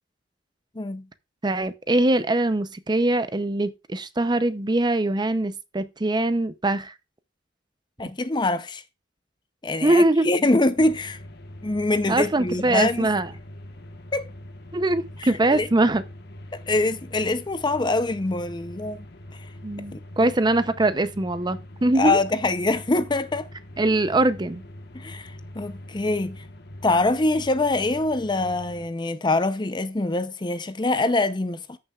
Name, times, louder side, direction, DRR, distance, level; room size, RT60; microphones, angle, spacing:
voice 1, 1.4-6.9 9.8-10.3 12.1-13.3 14.7-16.0 19.6-22.2 23.8-24.6, right 2 dB, 20° right, 0.6 m, -22 dB
voice 2, 8.0-8.8 9.6-11.2 11.6-13.1 14.1-14.3 15.2-15.7 16.5-19.1 19.9-20.3 21.9-23.5 24.9-26.4 26.8-31.8, left 2 dB, 25° left, 0.6 m, -24 dB
sound 1, 10.8-28.9, left 1 dB, 55° left, 1.3 m, -43 dB
14.0 x 6.7 x 2.4 m
head